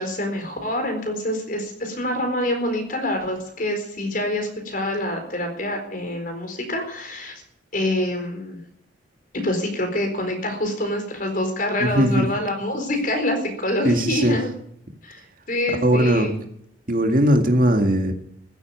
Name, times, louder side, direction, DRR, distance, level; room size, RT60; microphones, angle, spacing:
voice 1, 0.0-7.4 7.7-8.6 9.3-14.5 15.0-15.2 15.5-16.3, left 1 dB, 45° left, 4 dB, 4.2 m, -26 dB
voice 2, 11.8-12.3 13.8-14.4 15.8-16.4 16.9-18.1, right 1 dB, 45° right, 5 dB, 2.0 m, -19 dB
15.0 x 8.4 x 9.3 m, 0.72 s
head